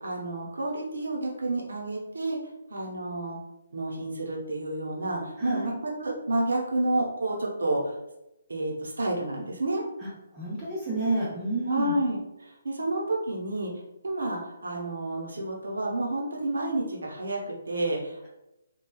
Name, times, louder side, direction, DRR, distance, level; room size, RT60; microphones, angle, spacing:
voice 1, 0.0-2.4 2.7-3.4 3.7-7.9 8.5-9.8 11.7-13.7 14.0-18.3, right 2 dB, 75° right, -2 dB, 0.7 m, -30 dB
voice 2, 5.4-5.7 10.3-11.9, right 2 dB, 15° right, -8 dB, 0.8 m, -29 dB
3.1 x 2.2 x 2.3 m, 0.91 s
figure-of-eight pair, 145°, 0 cm